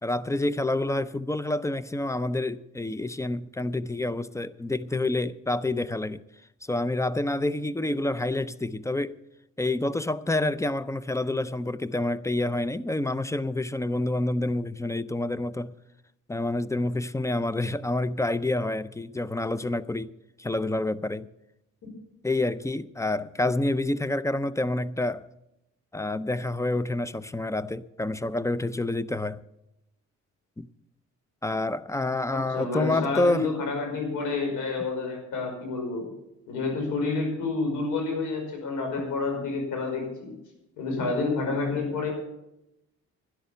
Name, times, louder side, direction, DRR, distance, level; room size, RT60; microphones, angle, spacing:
voice 1, 0.0-6.2 6.6-9.2 9.6-15.7 16.3-20.1 20.4-21.3 22.2-25.2 25.9-29.4 30.6-30.7 31.4-33.5, left 2 dB, 10° left, 0.5 m, -28 dB
voice 2, 32.3-36.1 36.5-40.3 40.8-42.1, left 3 dB, 90° left, 5.3 m, -29 dB
12.5 x 10.5 x 6.8 m
cardioid pair, 90°, 30 cm